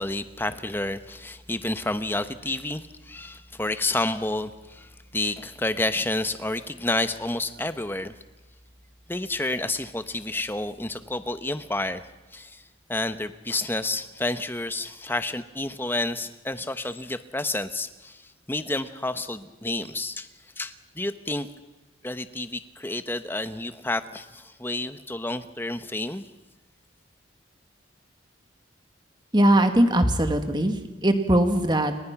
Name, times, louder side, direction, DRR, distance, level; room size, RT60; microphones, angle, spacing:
voice 1, 0.0-8.1 9.1-12.0 12.3-12.6 12.9-20.3 20.6-21.5 22.0-26.2, left 2 dB, 10° left, 11 dB, 1.0 m, -30 dB
voice 2, 29.3-32.0, right 1 dB, 20° right, 7 dB, 2.0 m, -21 dB
29.5 x 24.5 x 6.0 m, 1.1 s
head